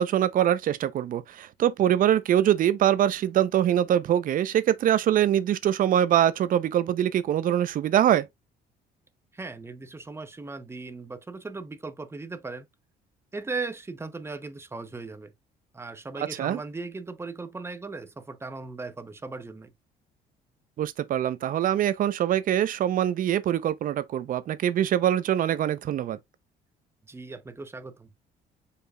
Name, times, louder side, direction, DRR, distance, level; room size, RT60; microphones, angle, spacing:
voice 1, 0.0-8.3 16.4-16.6 20.8-26.2, right 11 dB, 55° right, 0.6 m, -23 dB
voice 2, 9.3-12.7 13.3-15.3 15.7-19.7 27.0-28.1, right 3 dB, 15° right, 0.8 m, -38 dB
5.0 x 4.5 x 2.3 m
cardioid pair, 110°, 17 cm